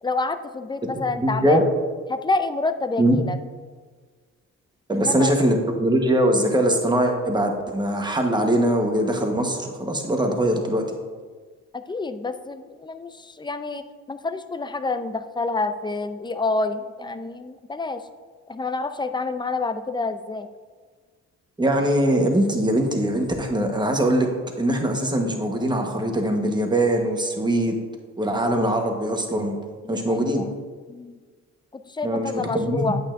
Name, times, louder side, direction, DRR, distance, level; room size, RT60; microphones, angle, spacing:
voice 1, 0.0-1.6 2.1-3.4 4.9-5.3 11.7-13.8 14.1-18.0 18.5-20.5 29.8-30.6 30.9-31.2 31.7-33.0, left 3 dB, 15° left, 10 dB, 0.5 m, -28 dB
voice 2, 1.2-1.6 3.0-3.2 4.9-10.8 21.6-24.3 24.6-27.8 28.2-29.6 29.9-30.5 32.0-32.9, right 1 dB, 15° right, 3 dB, 1.2 m, -22 dB
8.9 x 8.2 x 2.6 m, 1.5 s
cardioid pair, 90°, 30 cm